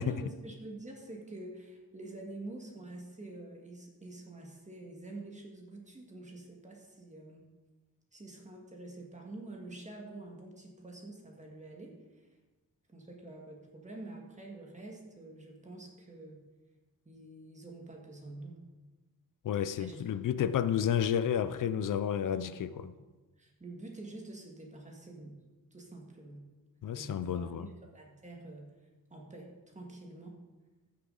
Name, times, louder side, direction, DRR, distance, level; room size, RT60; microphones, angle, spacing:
voice 1, 0.0-7.4 8.1-12.2 12.9-16.5 17.0-18.6 19.8-20.1 20.4-20.5 22.3-22.9 23.4-25.4 25.7-26.5 26.9-28.7 29.1-30.4, right 2 dB, 20° right, 1.7 m, -47 dB
voice 2, 19.4-22.9 26.8-27.7, left 9 dB, 60° left, 0.5 m, -31 dB
14.5 x 6.5 x 3.9 m
wide cardioid pair, 140°, 36 cm